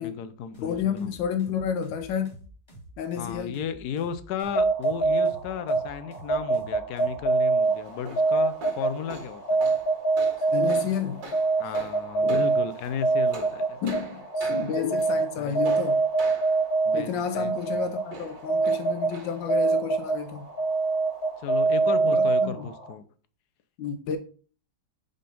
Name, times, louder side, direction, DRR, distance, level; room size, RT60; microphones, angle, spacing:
voice 1, 0.0-1.2 3.2-9.4 11.6-13.8 15.4-15.6 16.8-17.5 21.4-23.0, left 8 dB, 70° left, 1.1 m, -34 dB
sound 1, 0.5-7.2, right 1 dB, 15° left, 1.8 m, -48 dB
voice 2, 0.6-2.4 3.0-3.6 10.5-11.2 12.2-12.5 13.8-16.0 16.9-20.5 22.1-22.7 23.8-24.2, left 7 dB, 90° left, 1.4 m, -31 dB
sound 2, 4.4-22.9, right 3 dB, 55° left, 2.3 m, -25 dB
sound 3, 7.6-21.9, right 3 dB, 85° right, 2.7 m, -45 dB
5.7 x 3.7 x 5.2 m
omnidirectional pair, 1.9 m